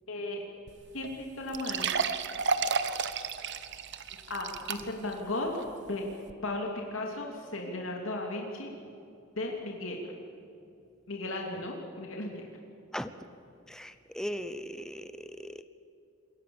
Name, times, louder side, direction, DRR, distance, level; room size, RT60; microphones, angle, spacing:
voice 1, 0.1-0.4 0.9-1.9 4.3-5.5 5.9-6.1 6.4-8.7 9.3-10.1 11.1-12.4, left 2 dB, 70° left, 0 dB, 3.0 m, -35 dB
sound 1, 0.7-0.8 1.0-1.1 1.5-5.1 5.6-5.7 6.3-6.4, right 5 dB, 60° right, 1.2 m, -32 dB
voice 2, 13.7-15.6, equal, 5° left, 10 dB, 0.8 m, -38 dB
27.5 x 22.5 x 7.2 m, 2.7 s
head